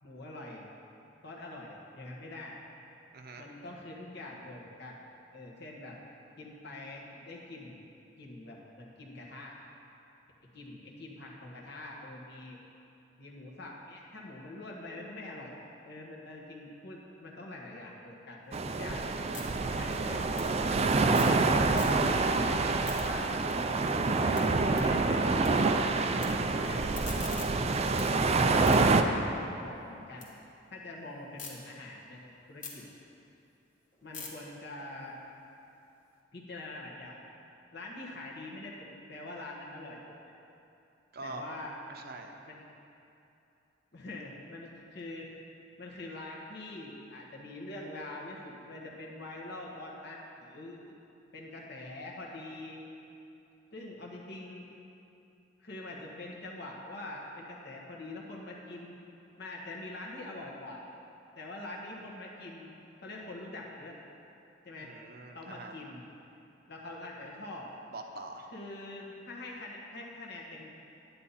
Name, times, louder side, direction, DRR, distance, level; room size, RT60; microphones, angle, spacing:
voice 1, 0.0-0.6 1.2-2.6 3.4-5.0 5.3-5.9 6.4-7.7 8.2-9.6 10.5-12.6 13.2-15.6 15.8-19.0 19.7-20.3 21.2-23.3 23.9-27.0 28.4-30.3 30.7-32.9 34.0-35.1 36.3-37.2 37.7-40.0 41.2-42.0 42.5-42.6 43.9-45.3 45.8-50.8 51.3-52.8 53.7-54.6 55.6-58.9 59.4-60.8 61.3-62.7 63.0-64.0 64.6-64.9 65.3-66.0 66.7-67.7 68.5-70.7, left 2 dB, 65° left, -2 dB, 1.5 m, -44 dB
voice 2, 3.1-3.5 21.0-21.4 41.1-41.5 41.9-42.3 64.8-65.7 67.9-68.5, right 3 dB, 55° right, 3 dB, 0.8 m, -44 dB
sound 1, 18.4-21.4 21.7-22.3 22.6-25.5 25.8-26.3 26.7-30.3 30.7-31.5 32.0-36.1, left 4 dB, 45° left, 1.6 m, -48 dB
sound 2, 18.5-29.0, right 3 dB, 35° right, 0.4 m, -27 dB
9.8 x 9.7 x 4.2 m, 2.8 s
head